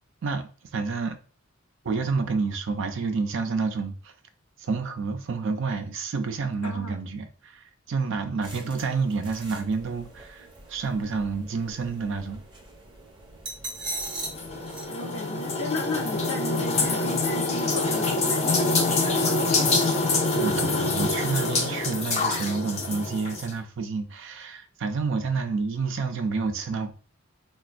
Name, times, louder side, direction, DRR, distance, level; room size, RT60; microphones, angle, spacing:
voice 1, 0.2-1.2 1.8-4.1 4.6-12.4 20.3-26.9, right 4 dB, 60° right, 0.4 m, -29 dB
voice 2, 6.6-7.0 14.9-19.8, left 2 dB, 80° left, 0.7 m, -35 dB
sound 1, 8.4-14.8, right 2 dB, 20° right, 0.7 m, -40 dB
sound 2, 13.9-23.5, left 3 dB, 30° left, 0.5 m, -25 dB
4.0 x 2.2 x 2.4 m
head